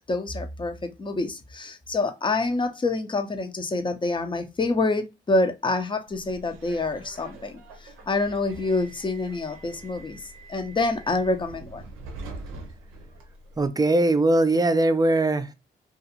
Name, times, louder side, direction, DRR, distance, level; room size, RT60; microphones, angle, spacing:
voice 1, 0.1-10.2 10.5-11.8, left 3 dB, 25° left, 0.6 m, -27 dB
Subway metro underground, 6.1-13.7, right 2 dB, 85° right, 0.6 m, -44 dB
voice 2, 13.6-15.5, right 2 dB, 20° right, 0.4 m, -21 dB
2.4 x 2.4 x 2.7 m
supercardioid pair, 50°, 21 cm